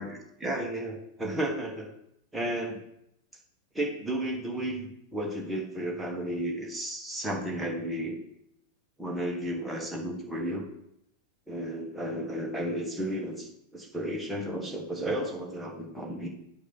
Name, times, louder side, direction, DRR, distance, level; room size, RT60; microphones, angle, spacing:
voice 1, 0.4-1.9 2.3-2.8 3.7-8.2 9.0-10.7 11.5-16.3, right 1 dB, 5° right, -1 dB, 1.4 m, -33 dB
8.1 x 2.8 x 5.4 m, 0.77 s
figure-of-eight pair, 90°, 0 cm